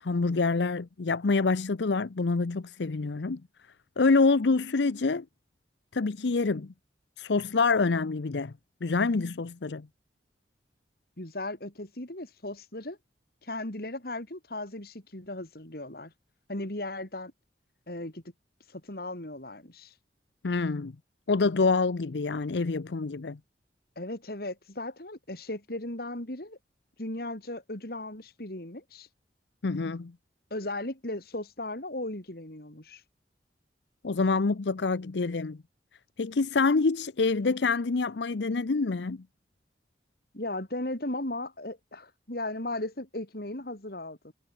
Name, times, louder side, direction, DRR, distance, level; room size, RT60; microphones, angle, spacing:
voice 1, 0.0-3.4 4.0-5.2 5.9-6.7 7.2-8.5 8.8-9.9 20.4-20.9 21.3-23.4 29.6-30.1 34.0-35.6 36.2-39.2, left 4 dB, 80° left, 0.7 m, -26 dB
voice 2, 11.2-13.0 13.4-16.1 16.5-17.3 17.9-18.2 18.7-19.9 24.0-26.6 27.0-29.1 30.5-33.0 40.3-44.3, left 1 dB, 60° left, 3.5 m, -36 dB
head